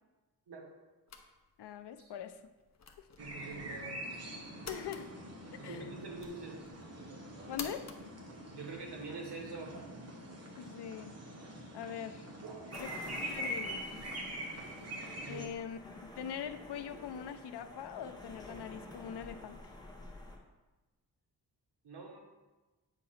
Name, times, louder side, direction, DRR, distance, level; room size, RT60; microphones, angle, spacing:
sound 1, 1.1-9.1, left 5 dB, 45° left, 0.6 m, -52 dB
voice 1, 1.6-2.4 4.7-5.1 5.6-5.9 7.5-7.9 10.6-11.1 11.7-12.3 12.8-13.9 15.3-15.8 16.2-19.6, left 8 dB, 85° left, 10 dB, 0.5 m, -42 dB
sound 2, 3.2-15.5, right 1 dB, 40° right, 1.0 m, -44 dB
voice 2, 3.2-4.0 5.6-6.9 8.5-9.8 12.4-12.9 15.2-15.6 21.8-22.2, right 3 dB, 85° right, 0 dB, 1.2 m, -45 dB
sound 3, 12.7-20.4, left 2 dB, 10° left, 0.8 m, -50 dB
8.1 x 2.8 x 5.7 m, 1.2 s
wide cardioid pair, 140°, 39 cm